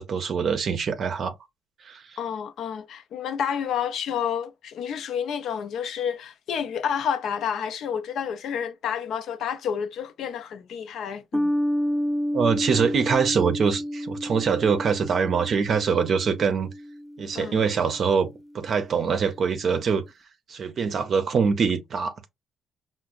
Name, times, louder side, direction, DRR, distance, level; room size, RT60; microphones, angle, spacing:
voice 1, 0.0-1.4 1.8-2.0 12.3-16.7 17.2-20.0 20.5-22.3, right 6 dB, 55° right, 0.5 m, -24 dB
voice 2, 2.2-11.5 17.3-17.6, left 8 dB, 75° left, 0.5 m, -30 dB
sound 1, 11.3-18.1, equal, 5° right, 0.5 m, -30 dB
4.8 x 2.0 x 2.3 m
cardioid pair, 90°, 0 cm